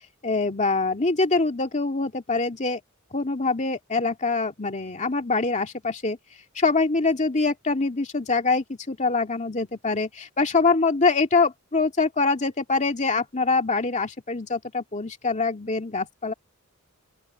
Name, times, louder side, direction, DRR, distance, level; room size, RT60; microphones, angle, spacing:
voice 1, 0.2-2.8 3.1-6.2 6.6-16.3, left 3 dB, 35° left, 2.2 m, -24 dB
open air
head